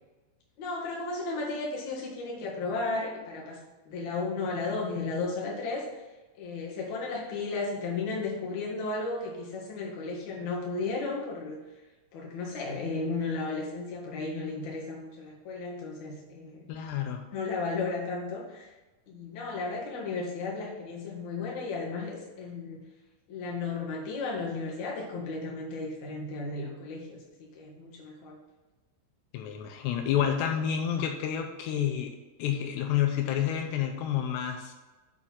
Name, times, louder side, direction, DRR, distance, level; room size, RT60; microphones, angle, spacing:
voice 1, 0.6-6.0 6.3-11.6 12.1-16.7 17.3-18.7 19.1-22.8 23.3-28.4, left 3 dB, 55° left, -3 dB, 2.5 m, -34 dB
voice 2, 16.7-17.2 29.3-34.7, left 9 dB, 85° left, 4 dB, 2.8 m, -29 dB
8.8 x 4.3 x 5.6 m, 1.2 s
omnidirectional pair, 4.9 m